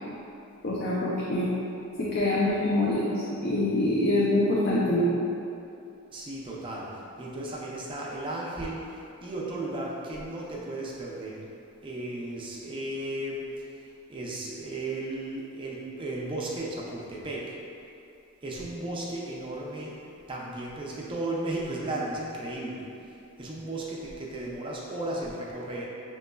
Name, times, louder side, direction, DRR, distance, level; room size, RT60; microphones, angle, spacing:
voice 1, 0.6-1.5 2.0-5.1, left 1 dB, 45° left, -6 dB, 0.5 m, -25 dB
voice 2, 6.1-11.5 11.8-13.4 14.1-17.5 18.4-20.0 20.3-22.9 23.4-25.9, right 1 dB, 25° right, -4 dB, 0.5 m, -35 dB
6.4 x 3.0 x 2.2 m, 2.7 s
head